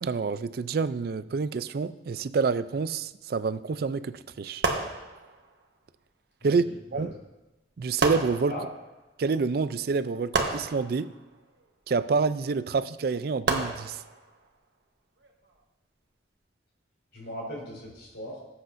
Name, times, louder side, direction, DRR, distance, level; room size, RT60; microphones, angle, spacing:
voice 1, 0.0-4.6 6.4-6.6 6.9-7.1 7.8-8.6 9.2-11.1 11.9-14.0, right 4 dB, 55° right, 0.4 m, -27 dB
sound 1, 4.6-5.6 7.0-7.1 8.0-9.0 10.3-11.6 13.5-14.5 15.2-15.5, right 3 dB, 75° right, 1.2 m, -31 dB
voice 2, 6.4-7.0 8.5-8.6 17.1-18.4, left 1 dB, 85° left, 3.9 m, -39 dB
19.0 x 8.0 x 2.6 m
head